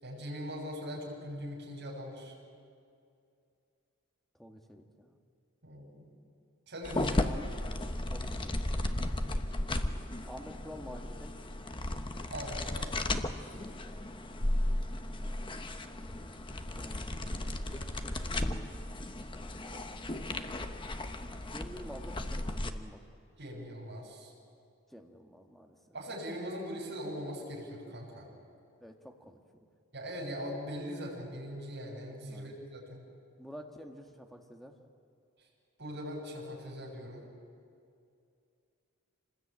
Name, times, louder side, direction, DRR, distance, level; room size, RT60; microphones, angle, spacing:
voice 1, 0.0-2.3 5.6-6.1 6.7-7.3 9.1-9.4 12.3-12.9 23.4-24.3 25.9-28.3 29.9-33.0 35.8-37.2, equal, 50° right, -1 dB, 6.6 m, -41 dB
voice 2, 4.4-5.2 7.2-7.5 8.1-8.8 10.2-11.4 13.9-14.3 16.7-18.7 21.4-23.0 24.9-26.0 28.8-29.4 32.3-32.5 33.4-34.8, equal, ahead, 3 dB, 1.7 m, -49 dB
sound 1, 6.8-22.7, left 1 dB, 20° left, 0.9 m, -35 dB
27.5 x 20.0 x 8.8 m, 2.4 s
head